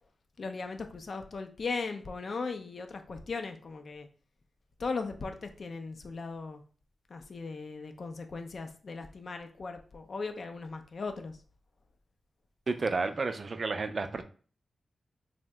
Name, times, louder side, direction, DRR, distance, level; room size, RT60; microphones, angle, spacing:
voice 1, 0.4-4.1 4.8-6.6 7.1-11.4, left 4 dB, 60° left, 6 dB, 0.4 m, -38 dB
voice 2, 12.7-14.2, right 3 dB, 50° right, 9 dB, 0.3 m, -31 dB
2.7 x 2.1 x 3.3 m, 0.41 s
cardioid pair, 70°, 0 cm